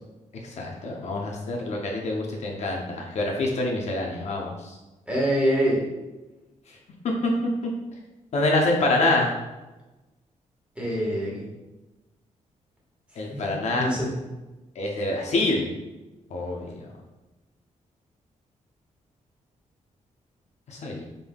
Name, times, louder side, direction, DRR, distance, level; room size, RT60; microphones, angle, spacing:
voice 1, 0.4-4.8 7.2-7.3 8.3-9.3 13.2-13.9 14.8-15.7 16.3-16.7 20.7-21.0, left 2 dB, 55° left, 0 dB, 0.6 m, -26 dB
voice 2, 5.1-5.8 10.7-11.5 13.3-14.1, equal, 10° right, -5 dB, 1.4 m, -25 dB
5.2 x 3.5 x 2.3 m, 1.1 s
wide cardioid pair, 140°, 13 cm